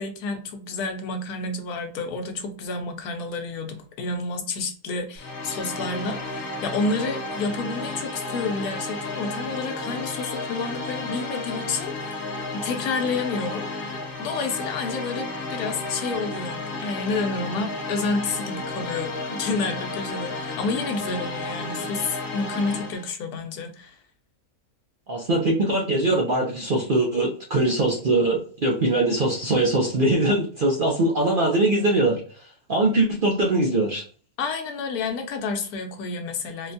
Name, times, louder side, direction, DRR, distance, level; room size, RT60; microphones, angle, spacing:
voice 1, 0.0-12.2 12.5-13.7 14.2-24.0 34.4-36.7, left 3 dB, 85° left, 5 dB, 1.2 m, -29 dB
sound 1, 5.2-23.1, left 2 dB, 60° left, 1.0 m, -32 dB
voice 2, 25.1-34.0, right 2 dB, 60° right, -1 dB, 0.5 m, -22 dB
3.9 x 2.2 x 2.6 m, 0.42 s
omnidirectional pair, 1.5 m